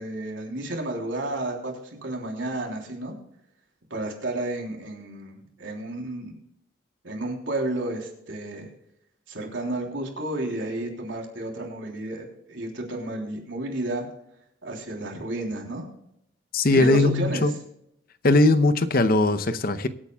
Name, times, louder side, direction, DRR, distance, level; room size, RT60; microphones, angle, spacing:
voice 1, 0.0-3.1 3.9-6.4 7.0-8.7 9.3-14.1 14.6-15.9 16.7-17.4, right 2 dB, 80° right, 1 dB, 3.4 m, -31 dB
voice 2, 16.5-17.5 18.2-19.9, left 2 dB, 50° left, 11 dB, 0.7 m, -20 dB
23.5 x 8.7 x 2.3 m, 0.77 s
head